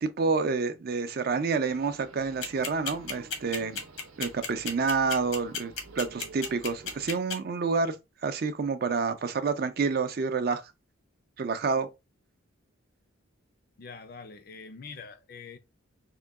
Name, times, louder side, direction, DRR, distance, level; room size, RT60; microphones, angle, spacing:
voice 1, 0.0-3.8 4.2-8.0 8.2-10.6 11.4-11.9, right 4 dB, 45° right, 0.4 m, -28 dB
sound 1, 1.6-7.2, right 3 dB, 85° right, 0.7 m, -50 dB
sound 2, 2.4-7.4, left 6 dB, 80° left, 0.9 m, -32 dB
voice 2, 13.8-15.6, left 5 dB, 45° left, 0.4 m, -44 dB
3.7 x 2.2 x 3.4 m
head